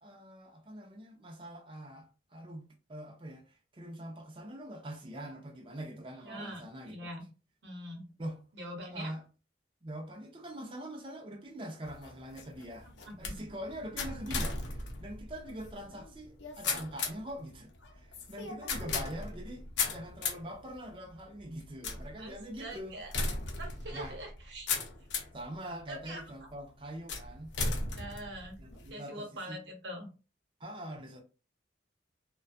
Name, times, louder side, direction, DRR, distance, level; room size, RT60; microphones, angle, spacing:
voice 1, 0.0-7.1 8.2-8.4 8.9-9.2 9.8-12.9 13.2-23.0 23.9-24.2 25.3-27.6 28.6-29.6 30.6-31.2, right 1 dB, 30° right, 0.5 m, -44 dB
voice 2, 6.2-7.3 7.6-8.1 8.5-9.1 13.0-13.1 22.2-23.1 23.6-24.7 25.9-26.2 28.0-28.6 28.9-30.1, right 1 dB, 70° right, 0.8 m, -43 dB
sound 1, 11.8-25.4 26.0-26.5 27.1-28.9, left 4 dB, 80° left, 0.6 m, -37 dB
2.4 x 2.2 x 2.4 m
head